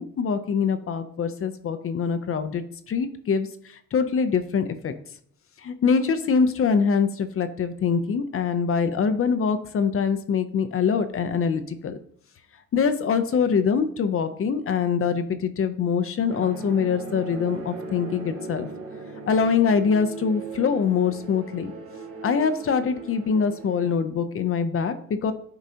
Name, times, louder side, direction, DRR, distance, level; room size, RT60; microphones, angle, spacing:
voice 1, 0.0-3.5 3.9-4.9 5.6-12.0 12.7-18.7 19.3-21.7 22.2-25.3, left 6 dB, 45° left, 10 dB, 0.6 m, -24 dB
sound 1, 16.3-24.0, right 4 dB, 50° right, 1.3 m, -38 dB
9.7 x 3.9 x 2.8 m, 0.62 s
cardioid pair, 90°, 30 cm